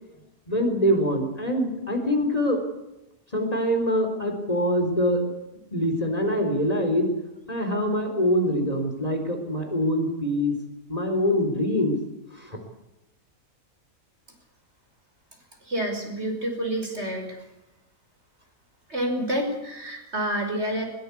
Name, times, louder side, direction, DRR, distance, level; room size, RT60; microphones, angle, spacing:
voice 1, 0.5-2.6 3.3-5.3 5.7-7.1 7.5-10.5 10.9-12.0 12.3-12.6, equal, 25° left, 4 dB, 4.1 m, -24 dB
voice 2, 15.7-17.4 18.9-20.8, right 1 dB, 50° right, 3 dB, 5.8 m, -28 dB
21.5 x 20.5 x 8.5 m, 0.93 s
omnidirectional pair, 1.5 m